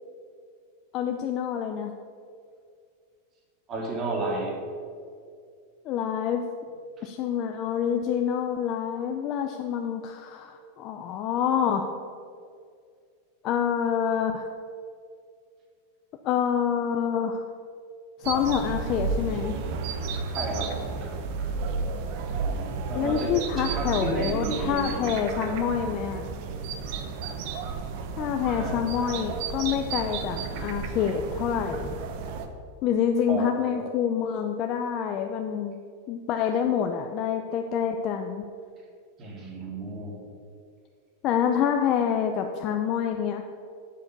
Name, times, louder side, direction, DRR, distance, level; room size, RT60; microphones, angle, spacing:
voice 1, 0.9-1.9 5.8-6.4 7.0-11.9 13.4-14.5 16.2-17.4 18.2-19.6 22.9-26.3 28.2-31.9 32.8-35.8 36.1-38.5 41.2-43.4, left 8 dB, 35° left, 4 dB, 0.6 m, -27 dB
voice 2, 3.7-4.6 20.3-20.7 21.0-21.1 22.9-25.2 28.5-28.8 33.3-33.5 39.2-40.1, right 2 dB, 30° right, -1 dB, 2.5 m, -32 dB
sound 1, 18.2-32.5, right 4 dB, 50° right, 1.0 m, -32 dB
8.2 x 7.1 x 6.7 m, 2.3 s
supercardioid pair, 145°, 0 cm